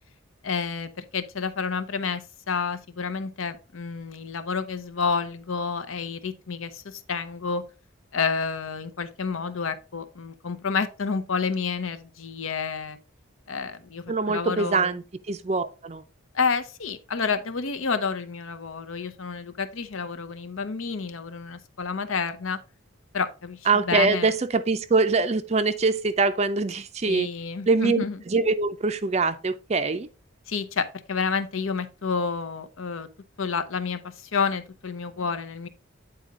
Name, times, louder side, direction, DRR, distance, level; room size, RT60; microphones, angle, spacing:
voice 1, 0.4-7.7 8.1-13.0 13.5-14.9 16.3-22.6 23.1-24.3 27.1-28.2 30.5-33.1 33.4-35.7, left 5 dB, 75° left, 0.7 m, -29 dB
voice 2, 14.1-16.0 23.7-27.3 27.7-30.1, right 3 dB, 30° right, 0.4 m, -24 dB
8.9 x 4.2 x 3.7 m
head